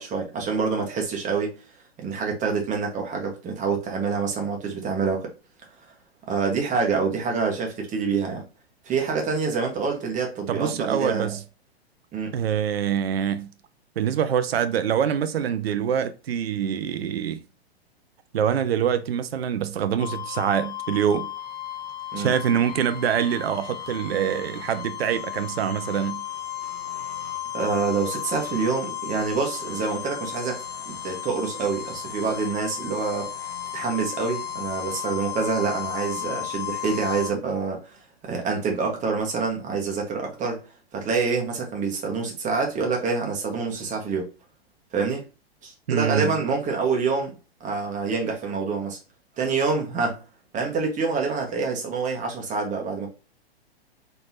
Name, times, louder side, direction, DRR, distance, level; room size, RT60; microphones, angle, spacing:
voice 1, 0.0-1.5 2.0-5.3 6.3-8.4 8.8-11.4 12.1-12.3 22.1-22.3 27.5-33.3 33.7-40.6 40.9-44.3 44.9-45.2 45.6-47.3 47.6-49.0 49.4-50.2 50.5-53.1, right 5 dB, 25° right, 1.7 m, -26 dB
voice 2, 10.5-11.4 12.3-13.5 14.0-17.4 18.3-21.3 22.2-26.2 45.9-46.3, right 8 dB, 70° right, 0.6 m, -25 dB
sound 1, 20.0-37.3, left 10 dB, 75° left, 1.4 m, -34 dB
4.3 x 4.0 x 2.9 m
figure-of-eight pair, 105°, 32 cm